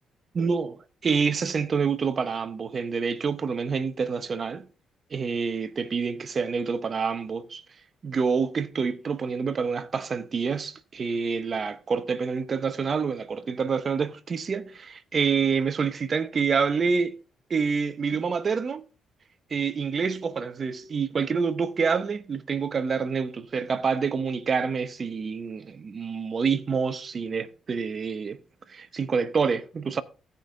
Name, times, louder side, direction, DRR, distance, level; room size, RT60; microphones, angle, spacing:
voice 1, 0.4-0.7 1.0-4.7 5.1-7.6 8.0-17.2 17.5-18.8 19.5-28.4 28.7-30.0, right 5 dB, 45° right, 0.7 m, -27 dB
15.5 x 5.3 x 3.8 m
cardioid pair, 90°, 0 cm